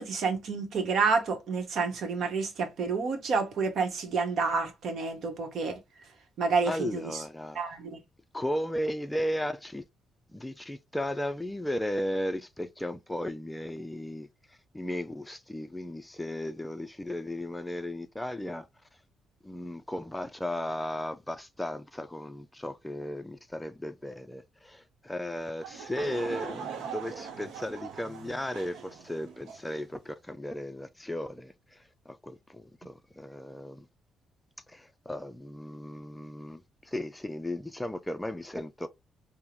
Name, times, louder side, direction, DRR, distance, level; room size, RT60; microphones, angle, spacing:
voice 1, 0.0-5.8 6.4-7.2 7.5-8.0, right 4 dB, 65° right, 1.0 m, -29 dB
voice 2, 6.7-7.6 8.3-9.8 10.3-14.3 14.7-18.7 19.4-31.8 32.1-33.9 34.7-38.9, left 1 dB, 10° left, 0.4 m, -35 dB
Laughter / Crowd, 25.6-29.8, right 7 dB, 85° right, 0.6 m, -41 dB
3.6 x 2.1 x 2.9 m
cardioid pair, 90°, 0 cm